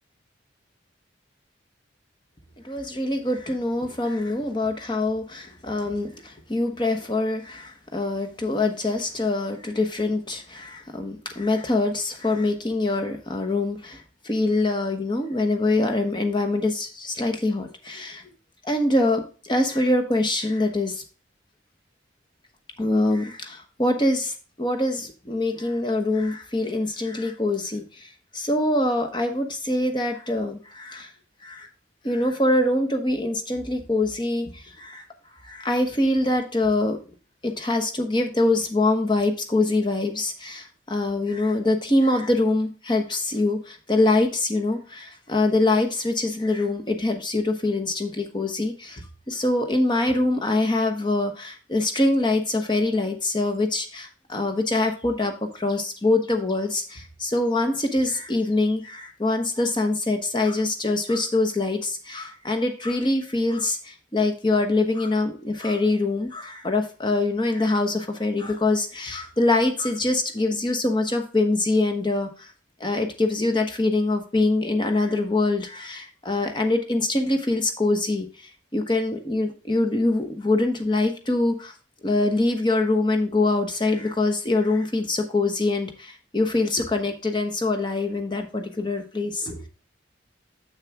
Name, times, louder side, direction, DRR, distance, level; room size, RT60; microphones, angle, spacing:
voice 1, 2.6-18.2 18.6-21.0 22.8-31.1 31.4-31.7 32.0-35.0 35.4-37.0 37.4-72.5 72.8-81.7 82.0-89.7, left 2 dB, 25° left, 5 dB, 1.1 m, -24 dB
7.3 x 6.4 x 3.5 m, 0.36 s
head